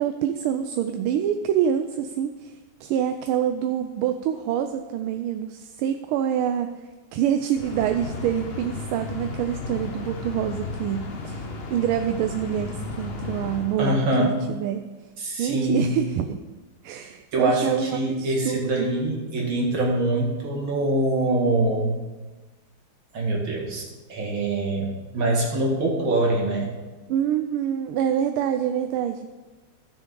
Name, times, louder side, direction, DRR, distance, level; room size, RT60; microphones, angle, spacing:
voice 1, 0.0-2.5 2.8-6.7 7.1-14.9 15.4-16.4 16.8-18.9 27.1-29.3, right 9 dB, 85° right, 7 dB, 1.4 m, -26 dB
sound 1, 7.6-14.4, left 3 dB, 60° left, 0.6 m, -34 dB
voice 2, 13.8-14.4 15.2-15.9 17.3-22.0 23.1-24.9 25.1-26.7, right 1 dB, 65° right, -1 dB, 2.7 m, -24 dB
15.0 x 7.0 x 3.8 m, 1.2 s
omnidirectional pair, 2.3 m